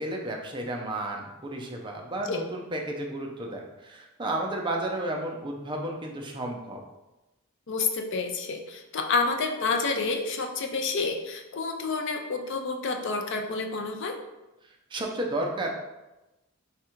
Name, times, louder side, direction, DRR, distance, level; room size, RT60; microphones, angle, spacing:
voice 1, 0.0-6.8 14.6-15.7, right 1 dB, 20° right, 0 dB, 0.5 m, -32 dB
voice 2, 7.7-14.2, left 4 dB, 55° left, 4 dB, 0.5 m, -29 dB
3.5 x 2.4 x 4.3 m, 1.0 s
head